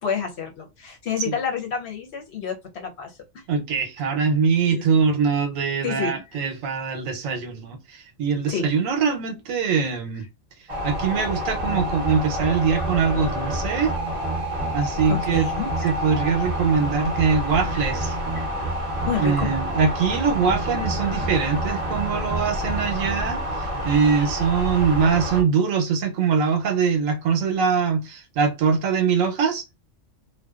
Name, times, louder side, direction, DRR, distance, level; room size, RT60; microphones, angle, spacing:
voice 1, 0.0-3.4 4.7-4.8 5.8-6.1 8.5-8.7 15.1-15.9 19.0-19.5, left 7 dB, 60° left, 0.9 m, -29 dB
voice 2, 3.5-10.3 10.8-13.9 14.7-15.5 15.8-18.2 19.2-29.6, right 6 dB, 85° right, 1.1 m, -23 dB
sound 1, 10.7-25.4, equal, 30° right, 0.8 m, -28 dB
2.6 x 2.2 x 2.3 m
omnidirectional pair, 1.3 m